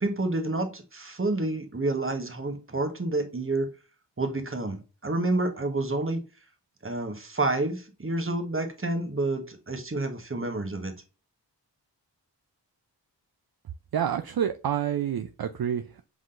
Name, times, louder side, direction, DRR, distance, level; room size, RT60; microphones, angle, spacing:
voice 1, 0.0-3.7 4.2-6.2 6.8-10.9, right 2 dB, 30° right, 1.3 m, -29 dB
voice 2, 13.9-16.0, right 9 dB, 60° right, 0.5 m, -28 dB
5.0 x 3.9 x 2.5 m
cardioid pair, 50°, 43 cm